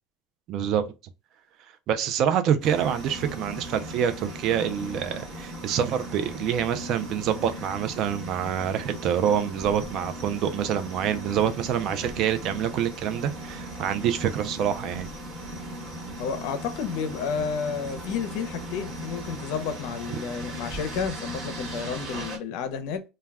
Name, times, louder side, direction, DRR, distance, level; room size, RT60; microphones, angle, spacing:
voice 1, 0.5-0.9 1.9-15.1 20.1-20.2, right 9 dB, 50° right, 0.4 m, -26 dB
sound 1, 2.6-22.4, right 1 dB, 35° right, 1.3 m, -38 dB
voice 2, 16.2-23.0, left 6 dB, 65° left, 0.5 m, -31 dB
2.2 x 2.2 x 3.4 m
supercardioid pair, 120°, 0 cm